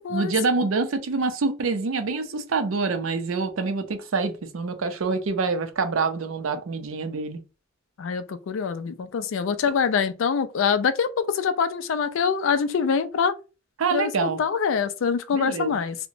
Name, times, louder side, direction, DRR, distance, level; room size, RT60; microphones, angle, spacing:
voice 1, 0.0-7.4 13.8-14.4 15.3-15.8, right 4 dB, 70° right, 0.5 m, -26 dB
voice 2, 8.0-13.3 13.9-14.1 14.4-16.0, left 6 dB, 70° left, 0.4 m, -24 dB
2.8 x 2.1 x 2.5 m
head